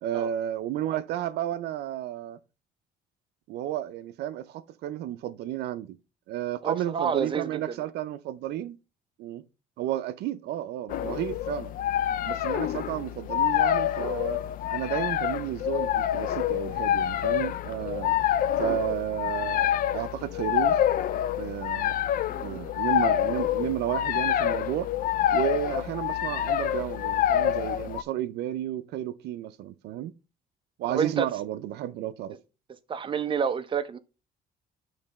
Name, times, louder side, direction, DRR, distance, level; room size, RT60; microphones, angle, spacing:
voice 1, 0.0-2.4 3.5-6.0 6.3-8.8 9.2-9.4 9.8-11.7 12.3-14.4 14.7-18.3 18.6-20.8 21.4-21.9 22.4-24.9 25.3-30.1 30.8-32.4, right 12 dB, 75° right, 0.5 m, -32 dB
voice 2, 6.6-7.8 22.3-22.6 30.9-31.3 32.9-34.0, right 6 dB, 30° right, 0.7 m, -29 dB
sound 1, 10.9-28.0, left 11 dB, 55° left, 0.4 m, -27 dB
8.6 x 3.2 x 4.1 m
cardioid pair, 110°, 17 cm